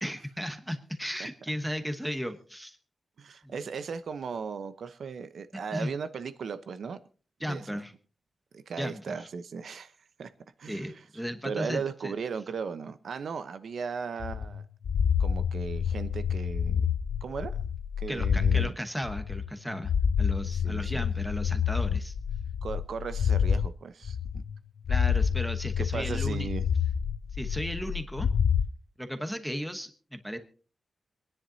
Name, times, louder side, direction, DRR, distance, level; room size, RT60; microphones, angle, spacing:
voice 1, 0.0-2.8 3.4-3.7 5.7-5.9 7.4-7.9 8.8-9.3 10.7-12.1 18.1-19.9 20.2-22.1 24.9-26.5 27.3-28.3 29.0-30.4, equal, ahead, 1.1 m, -35 dB
voice 2, 3.2-7.0 7.4-7.8 8.5-9.9 10.2-10.3 10.6-11.0 11.4-14.6 15.2-16.9 17.2-17.6 18.0-18.7 20.5-21.1 22.6-24.4 25.8-26.7, right 5 dB, 75° right, 0.9 m, -37 dB
sound 1, 14.2-18.7 19.0-23.7 24.0-24.6 24.8-28.7, left 7 dB, 90° left, 0.5 m, -28 dB
26.0 x 10.0 x 2.8 m
wide cardioid pair, 170°, 0 cm